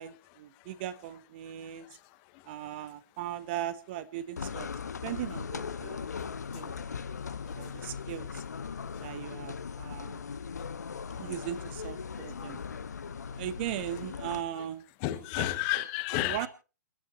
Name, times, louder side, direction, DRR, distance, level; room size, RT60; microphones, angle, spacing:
voice 1, 0.0-1.9 2.5-4.7 5.0-6.1 6.5-6.8 7.5-8.4 9.0-10.2 11.2-12.6 13.4-14.8 15.4-15.5 16.1-16.5, right 12 dB, 35° right, 1.2 m, -38 dB
voice 2, 1.6-2.0 2.3-2.4 7.5-7.6 11.1-11.4 15.0-16.5, left 15 dB, 30° left, 1.6 m, -32 dB
sound 1, 4.4-14.4, left 6 dB, 65° left, 1.1 m, -39 dB
28.0 x 12.0 x 2.9 m
figure-of-eight pair, 120°, 10 cm